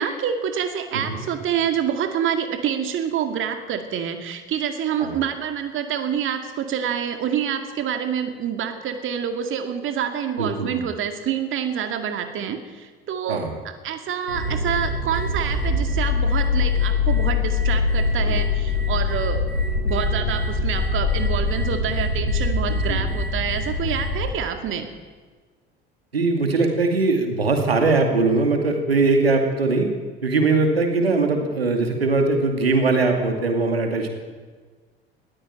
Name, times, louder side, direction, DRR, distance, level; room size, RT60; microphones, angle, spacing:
voice 1, 0.0-19.4 19.8-24.9, right 8 dB, 40° right, 7 dB, 2.1 m, -27 dB
voice 2, 10.4-10.8 13.3-13.6 18.2-18.4 22.9-23.1 26.1-29.9 30.2-34.1, right 3 dB, 80° right, 4 dB, 2.6 m, -21 dB
sound 1, 14.3-24.3, left 3 dB, 85° left, 4.5 m, -23 dB
20.5 x 15.5 x 9.0 m, 1.4 s
figure-of-eight pair, 60°, 30 cm